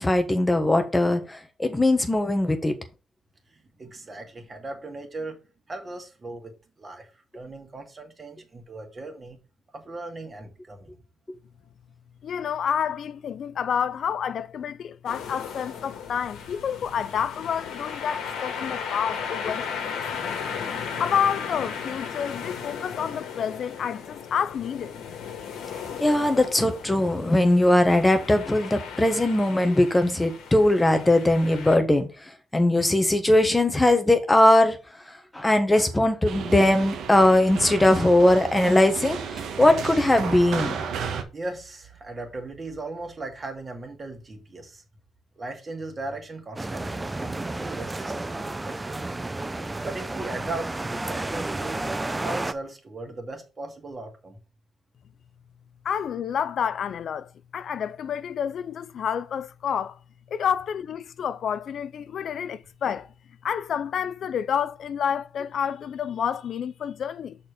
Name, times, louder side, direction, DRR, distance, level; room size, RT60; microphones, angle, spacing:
voice 1, 0.0-2.7 26.0-32.1 32.5-34.8 35.3-40.8, left 1 dB, 15° left, 1.2 m, -20 dB
voice 2, 3.5-5.4 5.7-9.4 9.7-10.9 20.5-20.6 41.3-44.8 45.4-49.0 49.8-51.9 52.2-54.4, right 2 dB, 30° right, 2.1 m, -38 dB
voice 3, 12.2-20.5 21.0-24.9 55.8-60.0 60.3-63.1 63.4-67.4, left 8 dB, 60° left, 0.4 m, -29 dB
sound 1, 15.1-31.8, left 6 dB, 85° left, 1.6 m, -36 dB
sound 2, 36.2-41.2, right 6 dB, 75° right, 1.2 m, -33 dB
sound 3, 46.6-52.5, right 2 dB, 15° right, 0.6 m, -31 dB
6.4 x 4.3 x 4.9 m
cardioid pair, 90°, 0 cm